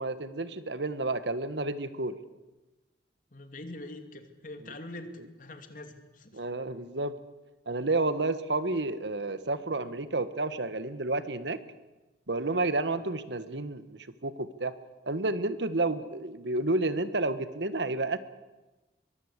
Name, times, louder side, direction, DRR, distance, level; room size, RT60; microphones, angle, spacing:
voice 1, 0.0-2.2 6.3-7.1 7.7-11.6 12.3-14.7 15.1-18.2, right 2 dB, 85° right, 13 dB, 1.5 m, -30 dB
voice 2, 3.3-5.1 5.4-6.4 13.0-13.2, left 2 dB, 50° left, 7 dB, 2.7 m, -44 dB
23.5 x 23.0 x 8.3 m, 1.1 s
head